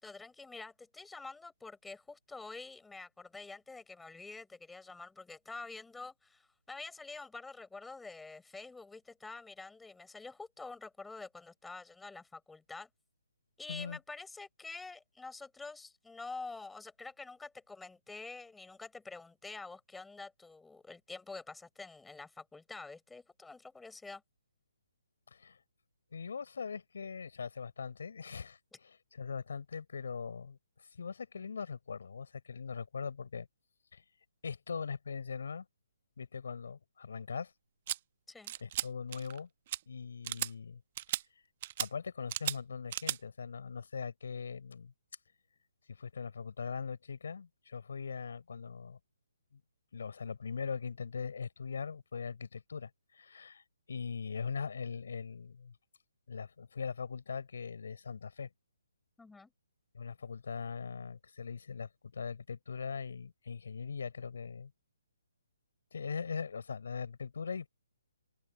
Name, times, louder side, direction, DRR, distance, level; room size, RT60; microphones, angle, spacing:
voice 1, 0.0-12.9 13.6-24.2 38.3-38.5 59.2-59.5, left 3 dB, 5° left, 7.2 m, -47 dB
voice 2, 13.7-14.0 25.3-25.6 26.1-30.6 31.0-33.5 33.9-34.0 34.4-35.6 36.2-37.5 38.6-39.5 39.9-40.8 41.8-44.9 46.0-49.0 49.5-49.6 49.9-53.6 53.9-55.7 56.3-58.5 59.9-64.7 65.9-67.7, left 6 dB, 70° left, 6.3 m, -41 dB
sound 1, 37.9-38.0 38.5-38.9 39.1-39.4 39.7-39.8 40.2-40.5 41.0-41.2 41.6-41.9 42.3-42.6 42.9-43.2, right 13 dB, 40° right, 1.0 m, -35 dB
open air
hypercardioid pair, 145°, 0 cm